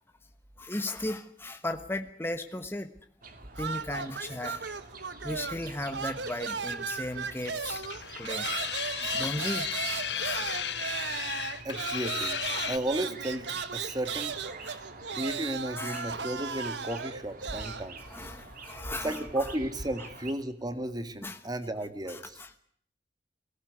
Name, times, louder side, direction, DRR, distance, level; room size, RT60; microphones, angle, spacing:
voice 1, 0.6-2.9 3.6-4.7 5.2-7.8 8.2-8.5 9.0-10.6 14.6-14.8 15.8-16.1 18.0-19.5 20.0-20.1 21.2-21.4 22.1-22.6, left 1 dB, 15° left, 7 dB, 1.2 m, -36 dB
sound 1, 3.2-20.3, right 3 dB, 55° right, 2.8 m, -47 dB
sound 2, 3.5-5.7 5.9-17.9, right 6 dB, 85° right, 1.4 m, -36 dB
sound 3, 7.7-12.8, left 9 dB, 75° left, 1.3 m, -34 dB
voice 2, 11.6-12.4 12.7-14.4 15.2-18.0 19.0-22.4, right 1 dB, 25° right, 10 dB, 1.9 m, -34 dB
22.0 x 17.5 x 9.5 m, 0.62 s
head